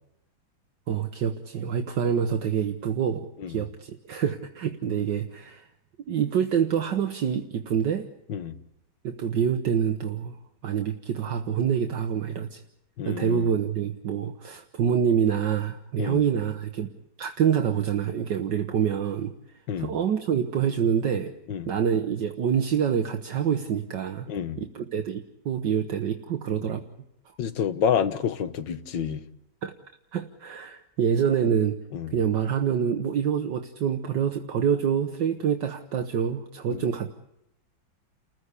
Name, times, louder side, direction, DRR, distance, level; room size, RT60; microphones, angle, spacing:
voice 1, 0.9-5.7 6.1-8.1 9.0-10.4 10.6-12.6 13.0-16.9 17.2-19.3 19.8-21.3 21.7-24.3 24.6-26.9 29.6-29.7 30.1-31.8 32.1-37.1, right 8 dB, 65° right, 1.7 m, -26 dB
voice 2, 13.0-13.5 16.0-16.2 19.7-19.9 21.5-21.7 24.3-24.6 27.4-29.2 31.9-32.1 36.7-36.8, left 8 dB, 65° left, 1.9 m, -28 dB
30.0 x 15.5 x 8.4 m
omnidirectional pair, 2.2 m